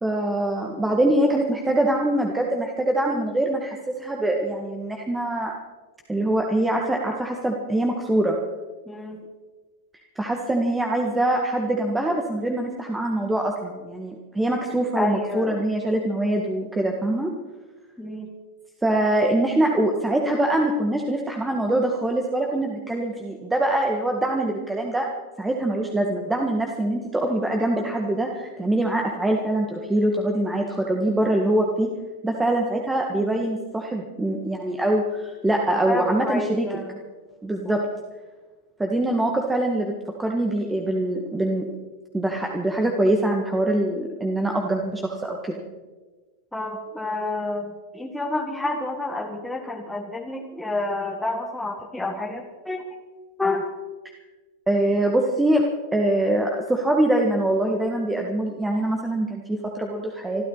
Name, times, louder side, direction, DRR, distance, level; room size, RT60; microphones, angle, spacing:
voice 1, 0.0-5.5 6.1-8.4 10.2-17.3 18.8-25.1 25.4-31.9 32.2-36.7 37.4-37.8 38.8-39.9 40.2-41.7 42.1-45.6 54.7-55.6 55.9-60.4, right 1 dB, 10° right, 1 dB, 1.8 m, -23 dB
voice 2, 8.9-9.2 14.9-15.6 18.0-18.3 35.9-37.0 37.6-37.8 46.5-52.8 53.4-53.7, left 2 dB, 5° left, -1 dB, 1.8 m, -29 dB
25.5 x 12.5 x 4.1 m, 1.3 s
hypercardioid pair, 100°, 0 cm